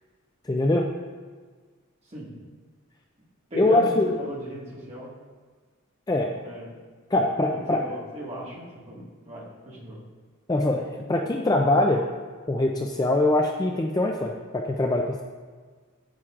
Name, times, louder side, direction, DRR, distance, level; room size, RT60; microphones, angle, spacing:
voice 1, 0.5-0.9 3.5-4.2 6.1-6.4 7.1-7.8 10.5-12.0 12.5-15.2, left 2 dB, 15° left, 1 dB, 0.4 m, -23 dB
voice 2, 3.5-3.9 4.2-5.1 6.4-6.7 7.7-10.0, equal, 30° right, -5 dB, 1.6 m, -38 dB
8.9 x 8.5 x 2.5 m, 1.5 s
head